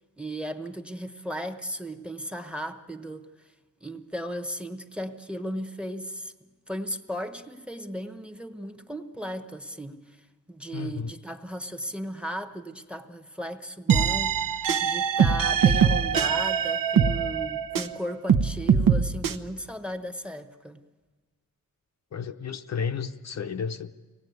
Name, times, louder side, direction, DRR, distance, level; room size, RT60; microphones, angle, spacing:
voice 1, 0.2-3.3 3.8-10.2 10.5-20.8, equal, 5° right, 8 dB, 1.0 m, -36 dB
voice 2, 10.7-11.1 22.1-24.0, left 6 dB, 50° left, 7 dB, 0.7 m, -32 dB
sound 1, 13.9-18.0 18.3-19.3, right 7 dB, 70° right, 1.1 m, -22 dB
24.5 x 18.5 x 9.5 m, 1.3 s
wide cardioid pair, 165°, 35 cm